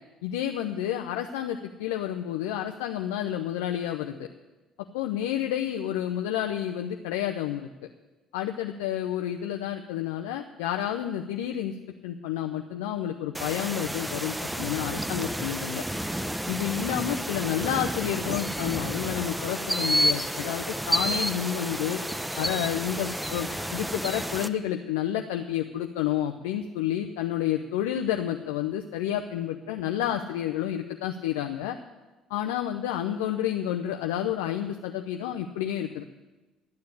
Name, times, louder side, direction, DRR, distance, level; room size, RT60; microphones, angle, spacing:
voice 1, 0.2-4.2 4.9-7.7 8.3-11.7 12.0-15.8 16.5-22.0 22.4-31.8 32.3-36.0, left 11 dB, 85° left, 4 dB, 0.7 m, -30 dB
sound 1, 13.3-24.5, right 1 dB, 10° right, 0.8 m, -30 dB
12.0 x 9.6 x 8.5 m, 1.1 s
hypercardioid pair, 65°, 0 cm